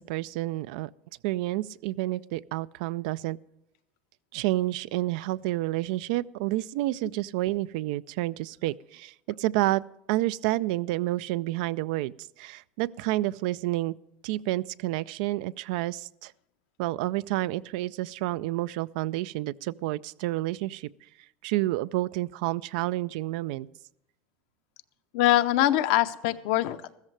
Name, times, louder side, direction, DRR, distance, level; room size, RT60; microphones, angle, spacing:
voice 1, 0.1-0.9 1.2-3.4 4.3-9.8 10.1-12.1 12.4-13.9 14.2-16.3 16.8-20.9 21.4-23.7, right 17 dB, 80° right, 19 dB, 0.3 m, -29 dB
voice 2, 25.1-27.0, left 14 dB, 75° left, 11 dB, 0.7 m, -23 dB
15.0 x 14.0 x 3.2 m, 0.82 s
cardioid pair, 140°, 5 cm